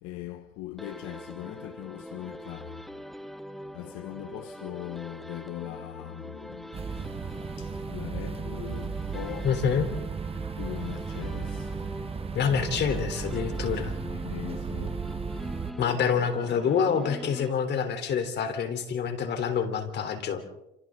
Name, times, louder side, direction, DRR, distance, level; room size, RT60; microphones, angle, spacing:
voice 1, 0.0-2.9 3.7-7.2 7.6-9.5 10.6-11.8 14.0-15.1, left 15 dB, 85° left, 1.2 m, -40 dB
sound 1, 0.8-18.0, equal, ahead, 1.2 m, -43 dB
sound 2, 6.7-15.7, right 6 dB, 30° right, 1.2 m, -35 dB
voice 2, 9.4-9.9 12.3-14.0 15.8-20.4, left 7 dB, 55° left, 3.7 m, -27 dB
28.5 x 28.0 x 3.9 m
supercardioid pair, 90°, 21 cm